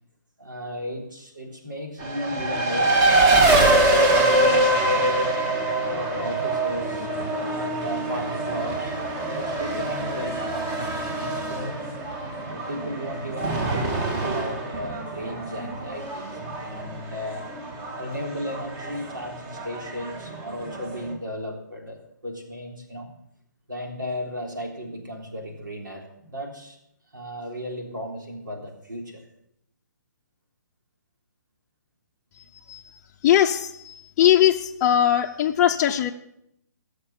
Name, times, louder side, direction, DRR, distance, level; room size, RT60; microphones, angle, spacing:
voice 1, 0.4-5.3 5.8-11.9 12.4-16.3 16.5-17.5 17.9-23.1 23.7-26.8 27.1-29.2, equal, 90° right, 1 dB, 3.6 m, -35 dB
Race car auto racing, 2.0-21.1, right 2 dB, 25° right, 1.8 m, -24 dB
voice 2, 33.2-36.1, left 11 dB, 30° left, 1 dB, 0.6 m, -20 dB
16.5 x 6.6 x 7.0 m, 0.76 s
figure-of-eight pair, 140°, 10 cm